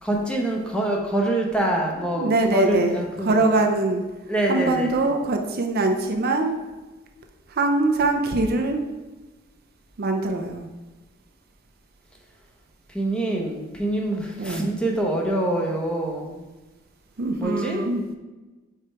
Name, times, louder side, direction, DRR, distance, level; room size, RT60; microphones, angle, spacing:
voice 1, 0.0-3.4 4.3-4.9 12.9-16.4 17.4-17.8, right 1 dB, 5° left, -1 dB, 0.9 m, -25 dB
voice 2, 2.2-4.0 4.5-6.5 7.5-8.8 10.0-10.7 14.4-14.7 17.2-18.0, right 2 dB, 50° right, 4 dB, 0.5 m, -23 dB
5.1 x 4.4 x 4.5 m, 1.2 s
head